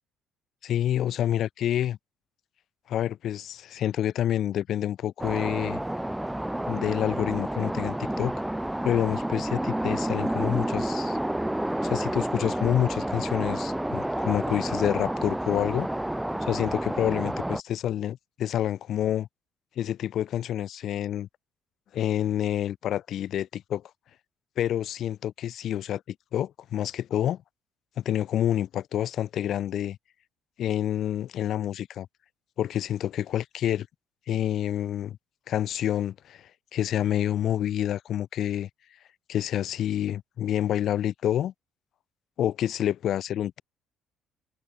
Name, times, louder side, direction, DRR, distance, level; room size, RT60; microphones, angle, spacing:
voice 1, 0.6-2.0 2.9-5.8 6.7-8.3 8.8-11.2 11.8-15.9 16.4-19.3 19.8-21.3 21.9-23.8 24.6-27.4 28.0-30.0 30.6-32.1 32.6-33.9 34.3-35.2 35.5-38.7 39.3-41.5 42.4-43.6, left 11 dB, 60° left, 5.1 m, -28 dB
sound 1, 5.2-17.6, right 1 dB, 5° right, 2.3 m, -30 dB
hypercardioid pair, 50°, 0 cm